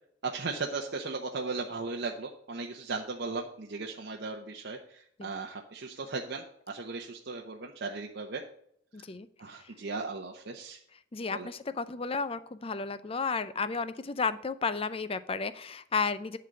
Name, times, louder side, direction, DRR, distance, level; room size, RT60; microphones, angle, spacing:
voice 1, 0.2-8.4 9.4-10.8 11.3-11.5, right 4 dB, 60° right, 1 dB, 0.8 m, -37 dB
voice 2, 8.9-9.3 11.1-16.4, left 4 dB, 30° left, 14 dB, 0.5 m, -32 dB
11.0 x 4.0 x 7.5 m, 0.67 s
head